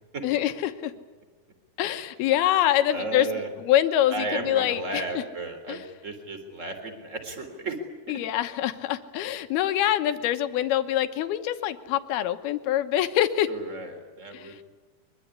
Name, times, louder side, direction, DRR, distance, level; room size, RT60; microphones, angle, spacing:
voice 1, 0.2-0.9 1.8-3.3 3.6-5.2 5.7-5.8 8.1-13.5 14.3-14.6, left 12 dB, 85° left, 9 dB, 3.1 m, -25 dB
voice 2, 2.9-3.5 4.1-7.8 13.5-14.6, right 2 dB, 20° right, 7 dB, 3.5 m, -34 dB
23.5 x 23.0 x 9.8 m, 1.3 s
omnidirectional pair, 4.4 m